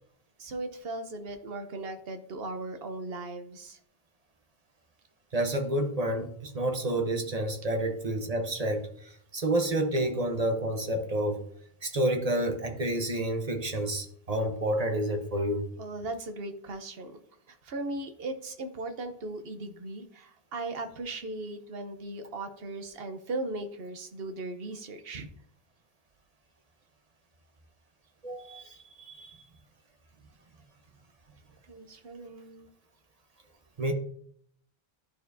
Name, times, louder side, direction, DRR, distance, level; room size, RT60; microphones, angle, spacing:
voice 1, 0.4-3.8 15.8-17.2 17.5-25.3 31.7-32.7, right 2 dB, 70° right, 7 dB, 1.1 m, -38 dB
voice 2, 5.3-11.4 11.8-15.7 28.2-29.4 33.8-33.9, right 1 dB, 40° right, 4 dB, 1.0 m, -29 dB
12.0 x 4.4 x 2.6 m, 0.63 s
omnidirectional pair, 1.0 m